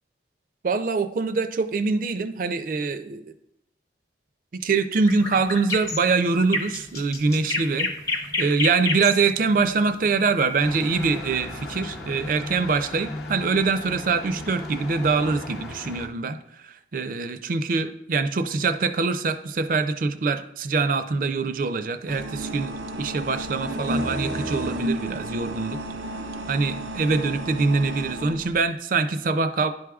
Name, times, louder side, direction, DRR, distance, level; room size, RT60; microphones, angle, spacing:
voice 1, 0.6-3.3 4.5-25.8 26.5-29.7, right 4 dB, 45° right, 10 dB, 0.4 m, -24 dB
sound 1, 5.1-11.2, left 2 dB, 20° left, 0.5 m, -29 dB
sound 2, 10.6-16.1, left 2 dB, 65° left, 0.7 m, -36 dB
sound 3, 22.1-28.6, right 1 dB, 85° right, 0.7 m, -32 dB
11.0 x 4.8 x 2.3 m, 0.83 s
head